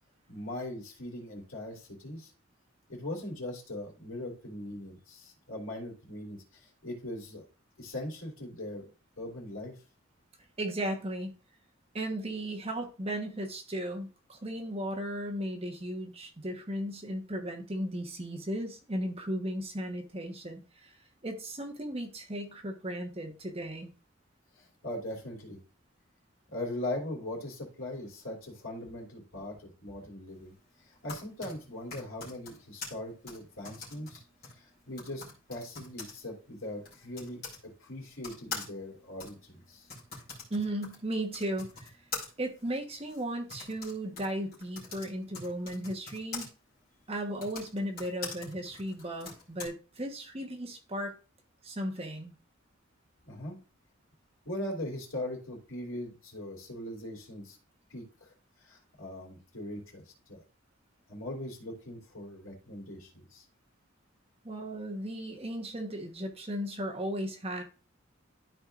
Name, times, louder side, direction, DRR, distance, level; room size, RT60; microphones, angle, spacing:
voice 1, 0.3-2.3 2.9-7.4 7.8-8.9 9.2-9.7 24.6-25.6 26.5-30.5 30.8-34.2 34.5-35.2 35.5-37.4 37.8-39.9 53.2-53.6 54.4-57.6 57.9-58.3 58.6-60.0 60.3-60.4 61.1-63.4, left 1 dB, 80° left, -1 dB, 2.8 m, -40 dB
voice 2, 10.6-11.3 11.9-20.9 21.2-23.9 40.5-42.0 42.4-46.5 47.1-51.2 51.6-52.3 64.4-67.6, right 1 dB, 30° right, 2 dB, 1.2 m, -36 dB
Typing, 30.8-37.6 38.2-46.5 47.3-49.7, left 4 dB, 45° left, 3.0 m, -44 dB
12.5 x 4.5 x 2.5 m, 0.34 s
head